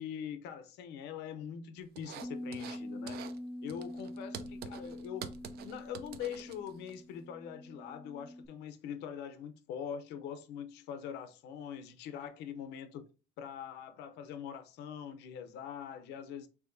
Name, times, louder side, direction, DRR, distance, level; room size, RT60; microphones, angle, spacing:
voice 1, 0.0-3.2 3.6-5.4 5.6-13.1 13.4-16.5, left 8 dB, 85° left, 0.7 m, -43 dB
sound 1, 2.0-2.8 3.1-3.4 3.7-6.9, right 8 dB, 70° right, 0.5 m, -46 dB
Bass guitar, 2.2-8.5, left 1 dB, 5° left, 0.3 m, -45 dB
4.8 x 3.4 x 2.6 m
cardioid pair, 110°, 17 cm